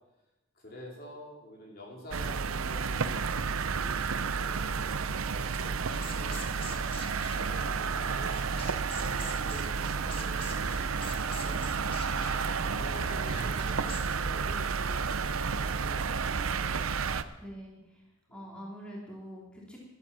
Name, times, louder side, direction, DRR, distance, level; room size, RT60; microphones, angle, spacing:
voice 1, 0.6-3.3 3.7-7.0 7.3-8.4 8.9-16.2 18.3-18.5, equal, 45° left, -2 dB, 3.8 m, -48 dB
sound 1, 2.1-17.2, right 5 dB, 85° right, 0.7 m, -31 dB
sound 2, 5.9-14.0, left 3 dB, 25° left, 1.8 m, -46 dB
voice 2, 17.4-18.0 18.3-19.8, equal, 5° left, -5 dB, 3.2 m, -44 dB
12.0 x 12.0 x 7.5 m, 1.0 s
head